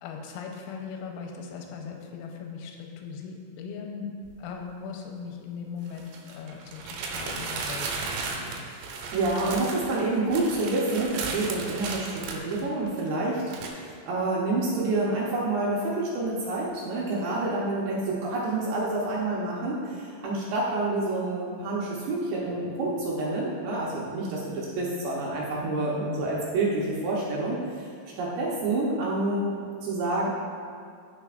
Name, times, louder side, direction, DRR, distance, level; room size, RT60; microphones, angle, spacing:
voice 1, 0.0-4.1 4.4-8.7 26.0-26.3, left 6 dB, 90° left, 2 dB, 3.6 m, -39 dB
sound 1, 4.3-4.4 5.9-13.1 13.5-13.7, right 4 dB, 90° right, 3.6 m, -35 dB
voice 2, 8.8-27.9 28.2-29.6 29.8-30.3, right 2 dB, 75° right, -5 dB, 2.8 m, -28 dB
15.0 x 6.0 x 2.5 m, 2.2 s
omnidirectional pair, 5.9 m